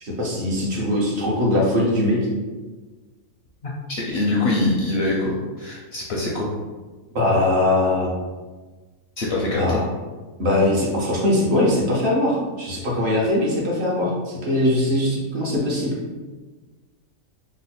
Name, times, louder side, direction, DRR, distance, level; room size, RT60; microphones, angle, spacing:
voice 1, 0.0-2.2 7.1-8.1 9.5-9.8 10.4-16.0, left 1 dB, 55° right, -4 dB, 1.0 m, -21 dB
voice 2, 3.6-6.5 9.2-9.9, left 2 dB, 65° left, -3 dB, 0.7 m, -24 dB
3.1 x 2.1 x 4.1 m, 1.3 s
omnidirectional pair, 1.4 m